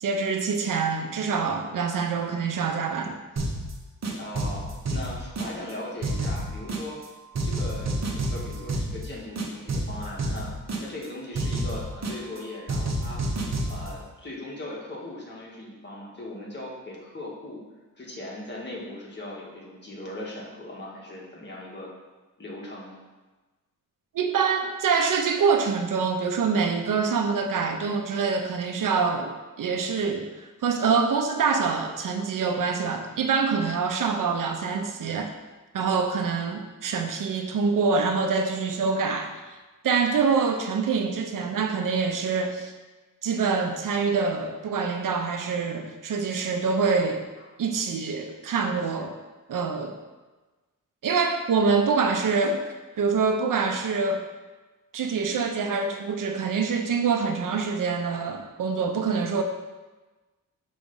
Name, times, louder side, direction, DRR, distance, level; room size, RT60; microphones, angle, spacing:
voice 1, 0.0-3.2 24.1-35.3 35.7-39.3 39.8-42.7 43.2-47.2 47.6-49.1 49.5-50.0 51.0-52.6 53.0-54.2 54.9-59.4, right 5 dB, 75° right, 4 dB, 0.7 m, -25 dB
sound 1, 3.4-3.7 4.0-5.7 6.0-7.1 7.3-9.1 9.4-11.1 11.3-12.4 12.7-13.9, right 1 dB, 55° right, 1.1 m, -29 dB
voice 2, 4.1-7.1 7.4-10.6 10.8-13.2 13.7-17.6 18.0-21.9 22.4-23.0 47.4-47.5, left 1 dB, 35° left, -4 dB, 1.8 m, -39 dB
6.1 x 3.4 x 5.4 m, 1.2 s
cardioid pair, 85°, 33 cm